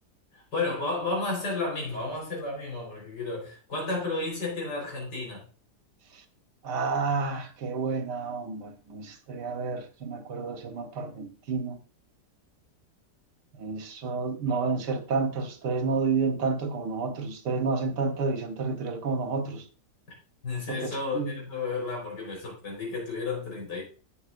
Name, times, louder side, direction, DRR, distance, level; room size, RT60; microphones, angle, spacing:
voice 1, 0.3-5.4 20.4-23.8, left 3 dB, 75° left, 5.0 m, -32 dB
voice 2, 6.6-11.8 13.5-19.7 20.7-21.4, right 4 dB, 75° right, 1.7 m, -30 dB
11.0 x 8.1 x 2.5 m
omnidirectional pair, 1.8 m